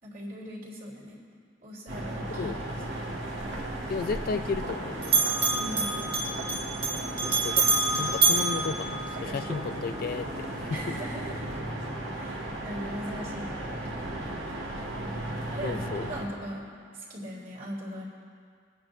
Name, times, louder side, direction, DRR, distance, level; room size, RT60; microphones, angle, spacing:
voice 1, 0.0-1.1 1.6-3.0 5.5-6.0 10.7-11.4 12.1-14.1 15.5-16.6 16.9-18.0, equal, 45° right, -5 dB, 3.1 m, -40 dB
sound 1, 1.9-16.2, right 1 dB, 65° right, 2.0 m, -35 dB
Bell, 3.4-4.8 5.0-9.5, right 3 dB, 30° right, 1.5 m, -27 dB
voice 2, 3.9-5.2 7.3-7.7 8.0-10.7 15.6-16.1, left 4 dB, 50° left, 10 dB, 0.3 m, -33 dB
24.5 x 9.0 x 2.7 m, 2.1 s
head